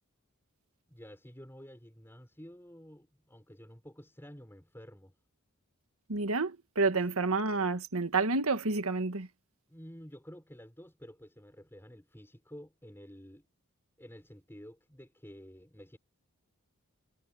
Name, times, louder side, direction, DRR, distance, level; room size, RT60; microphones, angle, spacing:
voice 1, 0.9-5.1 7.0-7.1 9.7-13.5 14.0-16.0, equal, 10° left, 5.9 m, -51 dB
voice 2, 6.1-9.3, right 3 dB, 75° right, 1.7 m, -29 dB
head